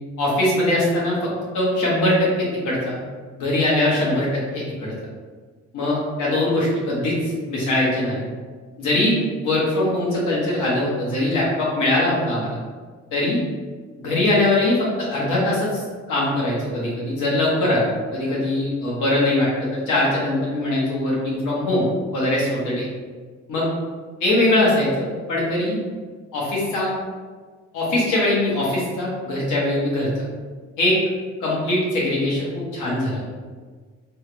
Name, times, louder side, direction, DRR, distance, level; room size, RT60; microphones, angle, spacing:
voice 1, 0.2-3.0 3.4-4.9 5.7-8.2 8.8-9.2 9.4-12.6 13.1-13.4 14.0-21.9 22.1-22.9 23.5-23.7 24.2-25.8 26.3-26.9 27.7-30.2 30.8-31.0 31.4-33.2, left 1 dB, 90° left, -6 dB, 1.2 m, -22 dB
3.4 x 2.3 x 2.9 m, 1.5 s
cardioid pair, 90°, 30 cm